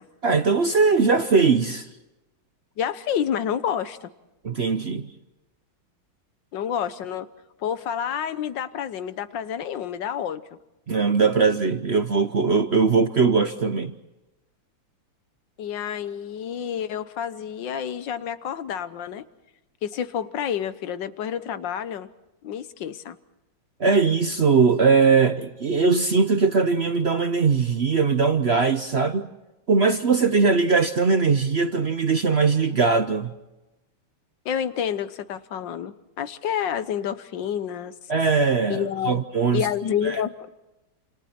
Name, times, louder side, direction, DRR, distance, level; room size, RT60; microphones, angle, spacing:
voice 1, 0.2-1.9 4.4-5.1 10.9-13.9 23.8-29.3 29.7-33.3 38.1-39.7 40.0-40.2, right 4 dB, 50° right, 0.7 m, -20 dB
voice 2, 2.8-4.1 6.5-7.3 7.6-10.4 15.6-19.2 19.8-22.1 22.4-23.2 34.5-38.0 38.7-39.2 39.5-40.5, left 9 dB, 65° left, 1.6 m, -29 dB
29.0 x 28.0 x 4.4 m
omnidirectional pair, 2.2 m